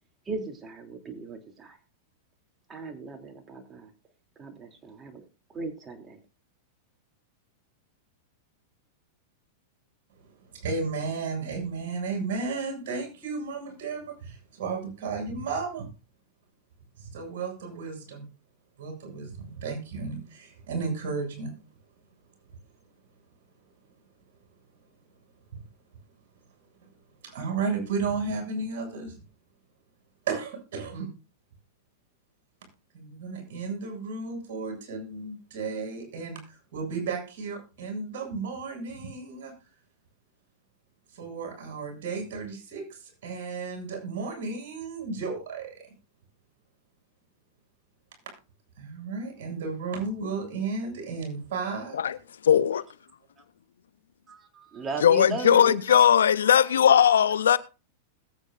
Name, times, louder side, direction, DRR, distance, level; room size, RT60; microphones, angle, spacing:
voice 1, 0.2-1.8 2.7-3.9 4.4-6.2 54.3-54.4 54.7-56.0, right 3 dB, 25° right, 3.2 m, -37 dB
voice 2, 10.5-15.9 17.0-18.3 18.8-21.5 27.2-29.1 30.3-31.1 32.9-39.5 41.1-45.7 48.8-52.0, right 4 dB, 65° right, 7.4 m, -33 dB
voice 3, 52.4-52.8 55.0-57.6, left 9 dB, 80° left, 0.9 m, -19 dB
21.0 x 9.1 x 2.6 m
hypercardioid pair, 110°, 0 cm